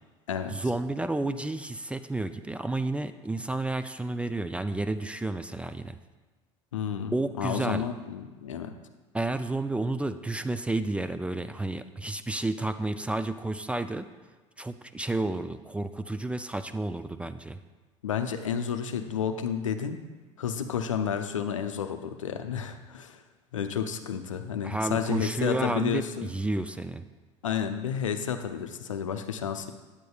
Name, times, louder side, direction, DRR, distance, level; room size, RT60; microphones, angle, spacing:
voice 1, 0.5-6.0 7.1-7.9 9.1-14.1 14.6-17.6 24.6-27.1, right 2 dB, 5° right, 10 dB, 0.3 m, -31 dB
voice 2, 6.7-8.7 18.0-20.0 20.4-23.2 23.5-26.3 27.4-29.7, left 7 dB, 85° left, 7 dB, 0.5 m, -31 dB
9.1 x 8.7 x 2.3 m, 1.3 s
hypercardioid pair, 75°, 16 cm